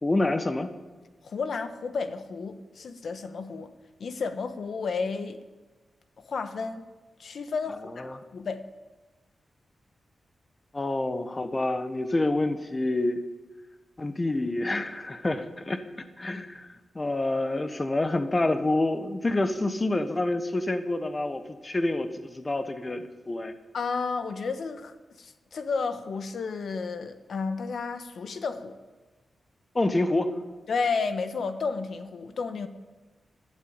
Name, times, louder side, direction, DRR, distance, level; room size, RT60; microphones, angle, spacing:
voice 1, 0.0-0.7 8.0-8.2 10.7-13.2 14.0-15.8 16.2-23.5 29.7-30.4, left 2 dB, 25° left, 9 dB, 1.1 m, -27 dB
voice 2, 1.2-3.7 4.0-5.4 6.2-6.8 7.2-8.1 8.3-8.6 23.7-28.8 30.7-32.7, left 4 dB, 70° left, 9 dB, 1.1 m, -32 dB
12.0 x 12.0 x 8.7 m, 1.2 s
wide cardioid pair, 105°, 0 cm